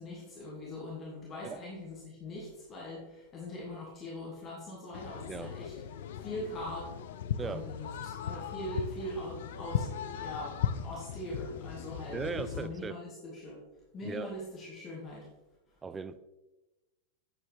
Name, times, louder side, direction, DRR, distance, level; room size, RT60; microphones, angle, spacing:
voice 1, 0.0-5.7 6.1-6.9 7.4-9.9 10.1-13.6 13.9-15.3, left 1 dB, 25° left, 2.5 m, -41 dB
sound 1, 4.9-12.7, left 8 dB, 55° left, 0.6 m, -37 dB
voice 2, 12.1-13.0 14.0-14.3 15.8-16.1, right 5 dB, 15° right, 0.5 m, -38 dB
9.1 x 8.3 x 3.6 m
figure-of-eight pair, 90°, 0 cm